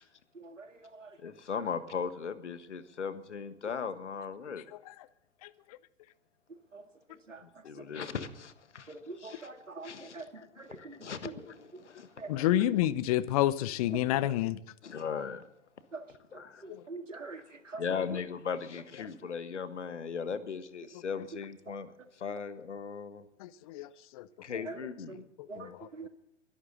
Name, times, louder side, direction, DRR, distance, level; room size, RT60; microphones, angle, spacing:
voice 1, 0.3-1.2 6.7-6.8 7.3-7.4 7.8-8.1 8.9-11.4 11.7-11.8 12.2-12.6 15.9-16.0 16.3-17.8 18.1-18.2 24.6-25.2 25.5-26.1, right 3 dB, 80° right, 7 dB, 2.0 m, -45 dB
voice 2, 1.2-4.7 7.6-8.9 9.2-12.1 14.8-15.5 16.3-16.6 17.8-23.2 24.4-25.3, left 6 dB, 65° left, 13 dB, 1.6 m, -38 dB
voice 3, 4.7-5.1 5.4-5.8 12.3-14.6 16.7-16.8 23.4-24.7 25.4-26.1, left 14 dB, 30° left, 19 dB, 0.7 m, -30 dB
23.0 x 11.5 x 4.0 m, 0.77 s
figure-of-eight pair, 110°, 37 cm